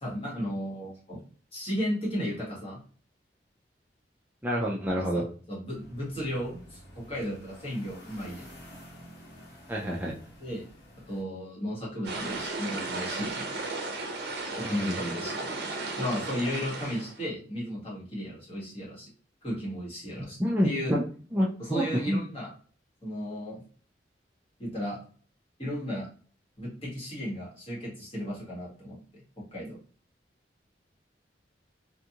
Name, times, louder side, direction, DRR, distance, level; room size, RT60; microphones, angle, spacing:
voice 1, 0.0-1.2 1.5-2.8 4.9-5.1 5.5-8.5 10.4-10.6 11.1-13.5 14.5-15.4 16.0-19.1 19.4-20.4 20.6-20.9 21.6-22.5 23.0-23.6 24.6-25.0 25.6-26.1 26.6-29.2 29.5-29.8, equal, 35° left, -5 dB, 1.4 m, -34 dB
voice 2, 4.4-5.2 9.7-10.2 14.6-15.1 20.4-21.0 21.3-22.2, equal, 10° right, -3 dB, 0.3 m, -28 dB
sound 1, 5.7-11.2, equal, 65° left, 1.4 m, -50 dB
sound 2, 12.0-17.2, right 3 dB, 65° right, 0.6 m, -35 dB
2.5 x 2.4 x 2.8 m, 0.42 s
head